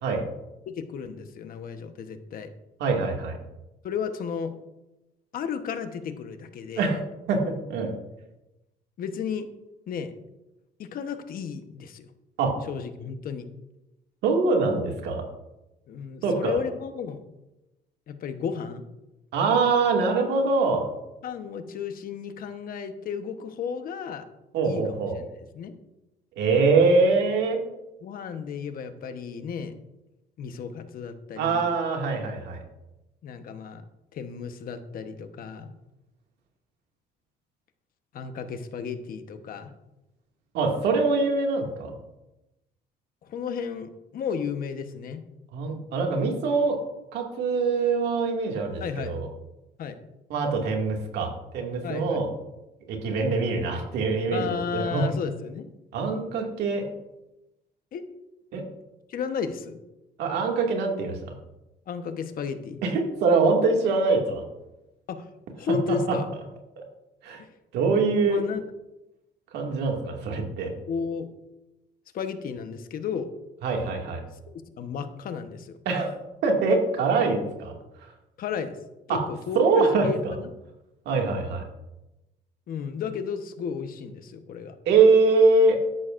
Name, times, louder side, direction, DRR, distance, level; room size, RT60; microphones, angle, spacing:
voice 1, 0.7-2.5 3.8-4.5 5.3-6.9 9.0-9.5 9.9-10.1 10.8-12.1 12.7-13.4 15.9-17.2 18.1-18.8 21.2-24.2 24.6-25.7 28.0-29.7 30.4-31.7 33.2-33.8 34.1-35.7 38.1-39.7 43.2-45.2 48.8-49.1 49.8-50.0 51.8-52.2 54.3-55.7 57.9-58.0 59.1-59.8 61.9-62.8 65.1-65.3 65.5-66.3 67.4-67.5 68.3-68.7 70.9-71.3 72.1-73.3 74.5-75.8 78.4-78.8 79.1-80.5 82.7-84.8, left 6 dB, 60° left, 8 dB, 1.2 m, -33 dB
voice 2, 2.8-3.4 6.8-7.0 7.3-7.9 12.4-12.5 14.2-15.2 16.2-16.6 19.3-20.9 24.5-25.1 26.4-27.6 31.4-32.6 40.5-41.9 45.5-46.8 47.1-49.3 50.3-52.3 52.9-55.0 55.9-56.8 58.5-58.6 60.2-61.2 62.8-64.4 65.9-66.2 67.2-67.4 67.7-68.4 69.5-70.7 73.6-74.2 75.9-76.1 76.4-77.8 79.1-79.2 79.6-80.1 81.1-81.6 84.9-85.8, right 4 dB, 80° right, 1 dB, 2.3 m, -23 dB
13.0 x 11.0 x 2.6 m, 0.96 s
cardioid pair, 110°, 17 cm